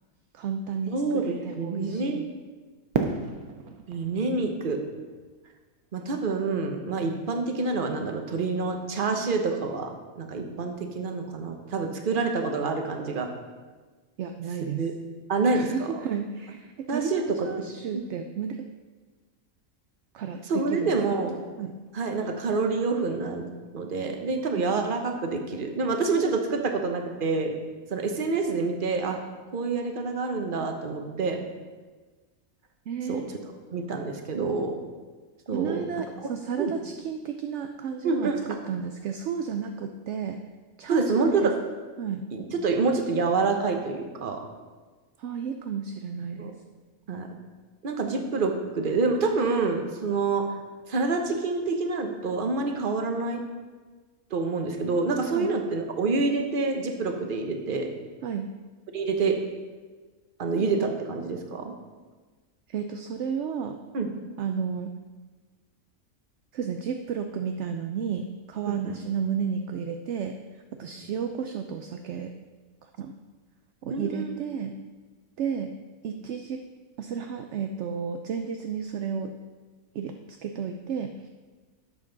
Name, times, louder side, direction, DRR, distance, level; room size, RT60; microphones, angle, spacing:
voice 1, 0.3-0.9 1.2-2.3 14.2-14.9 15.5-18.7 20.1-21.2 21.6-21.7 24.5-24.6 32.9-33.2 35.5-40.4 40.8-41.5 42.0-42.3 45.2-46.5 55.3-55.5 58.2-58.5 62.7-63.8 64.4-64.9 66.5-72.3 72.8-73.1 73.8-74.8 75.4-75.7 76.0-76.6 77.0-79.3 79.9-81.3, right 7 dB, 65° right, 6 dB, 0.8 m, -32 dB
voice 2, 0.9-2.2 3.9-4.8 5.9-9.9 10.2-13.3 14.8-14.9 15.3-15.9 16.9-17.5 17.9-18.0 20.5-21.4 21.9-27.5 27.9-29.2 29.5-31.4 33.1-33.2 33.7-34.7 35.5-35.8 36.6-36.7 38.0-38.4 40.9-41.5 42.3-44.4 46.4-46.5 47.1-47.3 47.8-50.4 50.9-53.4 54.3-57.9 58.9-59.4 60.4-61.7 63.9-64.1 68.7-68.9 73.9-74.3, right 4 dB, 40° right, 4 dB, 1.0 m, -27 dB
Fireworks, 2.9-6.0, right 5 dB, 85° right, 1.3 m, -33 dB
11.0 x 7.4 x 3.9 m, 1.3 s
omnidirectional pair, 1.5 m